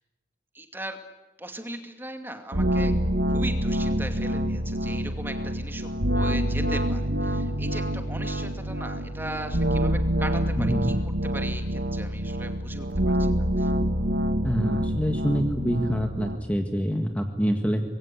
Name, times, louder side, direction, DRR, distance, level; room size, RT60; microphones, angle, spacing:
voice 1, 0.5-1.0 1.4-2.9 3.3-11.0 11.2-12.9 13.2-13.7, right 1 dB, 10° right, 6 dB, 2.5 m, -38 dB
sound 1, 2.5-16.4, equal, 75° right, 2.1 m, -26 dB
voice 2, 10.6-10.9 14.4-17.8, equal, 10° left, 4 dB, 1.7 m, -26 dB
25.5 x 22.5 x 9.9 m, 1.1 s
head